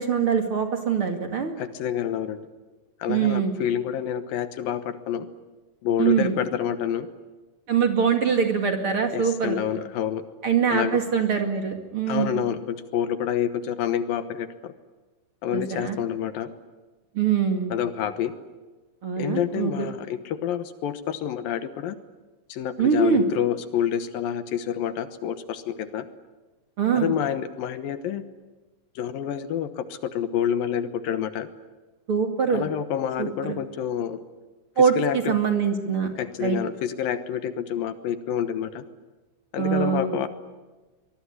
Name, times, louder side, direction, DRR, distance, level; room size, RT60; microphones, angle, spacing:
voice 1, 0.0-1.5 3.1-3.5 6.0-6.4 7.7-9.6 10.4-12.4 15.5-16.0 17.1-17.7 19.0-19.9 22.8-23.2 26.8-27.1 32.1-32.6 33.2-33.6 34.8-36.1 36.4-36.6 39.6-40.1, right 6 dB, 40° right, 5 dB, 2.6 m, -23 dB
voice 2, 1.6-2.4 3.0-5.3 5.8-7.1 9.1-10.2 10.7-11.0 12.1-14.7 15.4-16.5 17.7-18.3 19.2-22.0 22.5-26.1 26.9-28.2 29.0-31.5 32.5-34.2 34.8-35.4 36.2-38.8 39.5-40.3, left 9 dB, 75° left, 11 dB, 2.8 m, -28 dB
23.5 x 22.5 x 9.8 m, 1.2 s
omnidirectional pair, 4.4 m